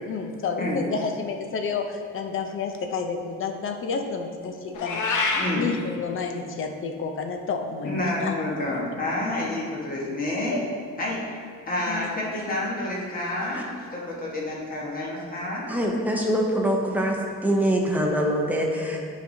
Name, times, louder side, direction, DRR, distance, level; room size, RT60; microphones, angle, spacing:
voice 1, 0.1-5.2 5.5-8.4 11.9-12.1, left 5 dB, 45° left, 4 dB, 0.6 m, -30 dB
Meow, 4.7-5.5, left 3 dB, 80° left, 0.9 m, -25 dB
voice 2, 5.3-5.7 7.8-10.6 11.0-11.2 11.7-15.7, left 1 dB, 30° left, -4 dB, 1.3 m, -29 dB
voice 3, 15.7-19.0, equal, 5° right, -1 dB, 0.6 m, -24 dB
9.2 x 5.1 x 2.7 m, 2.2 s
cardioid pair, 170°, 29 cm